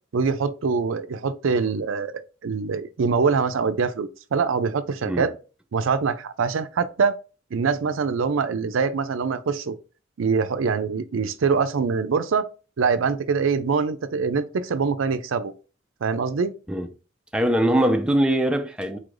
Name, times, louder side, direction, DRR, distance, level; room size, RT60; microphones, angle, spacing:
voice 1, 0.1-5.3 5.7-7.2 7.5-9.8 10.2-12.5 12.8-15.5 16.0-16.5, right 5 dB, 75° right, 0.4 m, -24 dB
voice 2, 17.3-19.0, right 1 dB, 5° right, 0.3 m, -21 dB
4.2 x 2.5 x 4.7 m
head